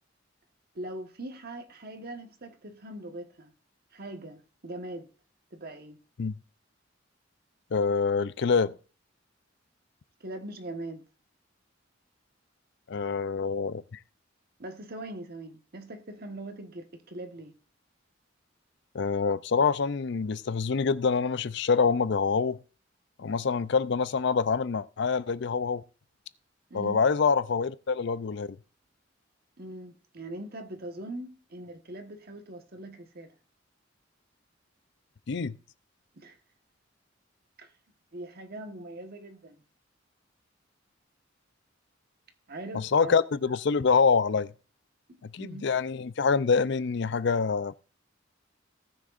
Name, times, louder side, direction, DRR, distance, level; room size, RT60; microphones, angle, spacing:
voice 1, 0.7-3.5 3.9-5.1 5.5-6.0 10.2-11.0 14.6-17.5 26.7-27.0 29.6-33.3 36.1-36.4 37.6-37.7 38.1-39.6 42.5-43.2 45.1-45.6, right 1 dB, 55° right, 1.3 m, -41 dB
voice 2, 7.7-8.7 12.9-13.8 18.9-22.6 23.2-25.8 26.7-28.5 35.3-35.6 42.7-44.5 45.2-47.7, left 5 dB, 65° left, 0.5 m, -26 dB
18.0 x 6.4 x 2.5 m
head